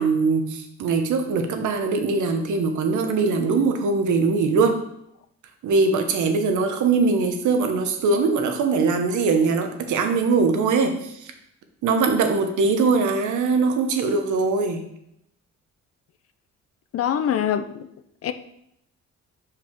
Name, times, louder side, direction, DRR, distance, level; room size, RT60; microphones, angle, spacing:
voice 1, 0.0-4.8 5.6-11.3 11.8-14.8, right 4 dB, 75° right, 1.0 m, -21 dB
voice 2, 16.9-17.9 18.2-18.3, left 9 dB, 50° left, 0.5 m, -24 dB
5.6 x 4.9 x 4.5 m
cardioid pair, 90°, 30 cm